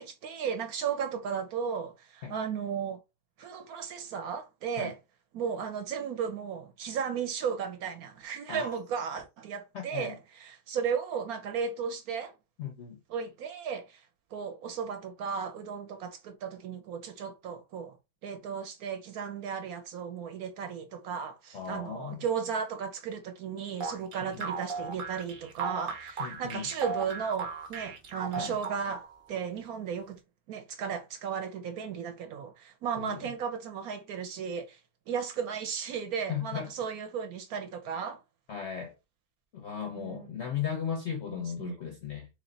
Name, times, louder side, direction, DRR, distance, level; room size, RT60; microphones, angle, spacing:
voice 1, 0.0-3.0 3.4-5.0 5.3-12.3 13.1-14.0 14.3-17.9 18.2-30.2 30.5-34.8 35.1-38.2 40.0-40.3 41.3-41.7, right 7 dB, 65° right, 1.0 m, -35 dB
voice 2, 9.7-10.2 12.6-13.0 21.5-22.2 24.2-24.5 26.2-26.7 28.4-28.6 33.0-33.2 36.3-36.7 38.5-38.9 39.5-42.3, left 8 dB, 65° left, 0.7 m, -36 dB
sound 1, 23.8-29.1, right 4 dB, 50° right, 0.6 m, -37 dB
3.1 x 3.1 x 3.9 m
omnidirectional pair, 1.8 m